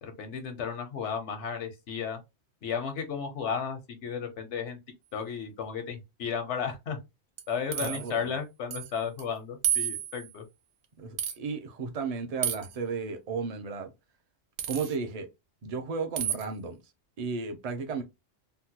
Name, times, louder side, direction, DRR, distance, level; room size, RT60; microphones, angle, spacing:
voice 1, 0.0-2.2 2.6-4.8 5.1-7.0 7.5-10.4, left 6 dB, 90° left, 1.1 m, -34 dB
sound 1, 7.4-8.1 8.7-8.9 9.2-9.3 9.6-10.3 11.2-11.4 12.4-12.8 14.6-14.9 16.2-16.5, right 10 dB, 90° right, 0.9 m, -31 dB
voice 2, 7.8-8.3 11.0-13.9 14.7-15.3 15.6-16.8 17.2-18.0, right 5 dB, 45° right, 0.6 m, -34 dB
3.6 x 2.1 x 2.8 m
omnidirectional pair, 1.2 m